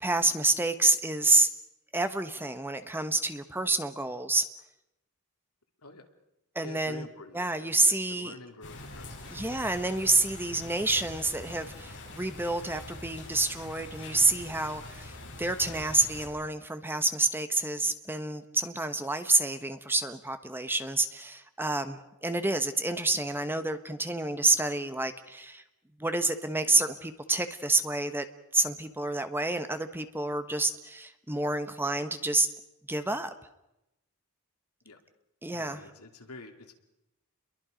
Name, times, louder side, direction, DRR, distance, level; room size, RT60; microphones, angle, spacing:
voice 1, 0.0-1.5 1.9-4.4 6.5-7.1 7.3-8.3 9.3-15.1 15.4-25.6 26.0-28.2 28.5-32.5 32.9-33.3 35.4-35.8, right 2 dB, 10° right, 9 dB, 1.0 m, -28 dB
voice 2, 6.6-9.6 34.8-35.0 35.5-36.7, left 2 dB, 80° left, 4 dB, 2.7 m, -48 dB
sound 1, 8.6-16.3, left 2 dB, 55° left, 7.7 m, -44 dB
29.5 x 22.5 x 5.2 m, 0.90 s
head